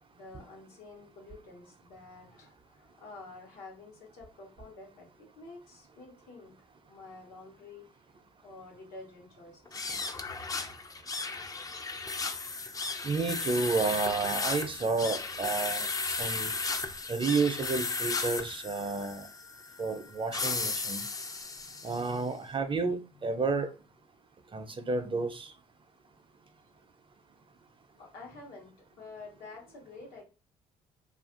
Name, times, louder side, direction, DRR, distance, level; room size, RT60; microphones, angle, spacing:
voice 1, 0.1-6.5 6.9-8.0 8.4-9.9 21.3-22.0 27.9-30.2, left 3 dB, 75° left, -1 dB, 1.0 m, -49 dB
sound 1, 9.7-22.2, left 4 dB, 25° left, 0.4 m, -35 dB
voice 2, 13.0-16.5 17.1-19.3 19.8-21.0 21.8-23.7 24.5-25.5, right 4 dB, 35° right, 9 dB, 0.5 m, -31 dB
2.4 x 2.4 x 2.5 m, 0.32 s
supercardioid pair, 60°, 15 cm